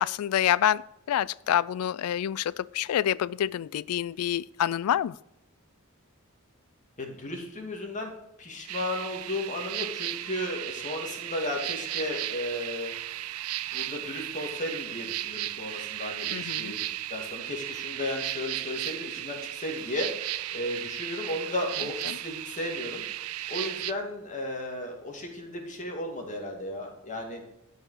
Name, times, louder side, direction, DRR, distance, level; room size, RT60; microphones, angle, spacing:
voice 1, 0.0-5.2 16.3-16.7 22.1-22.2, left 10 dB, 80° left, 0.3 m, -27 dB
voice 2, 7.0-8.1 8.4-12.9 13.7-20.1 20.5-23.0 23.5-27.5, left 1 dB, 35° left, 2.4 m, -34 dB
sound 1, 8.7-23.9, right 14 dB, 80° right, 0.5 m, -35 dB
12.5 x 5.4 x 6.6 m
head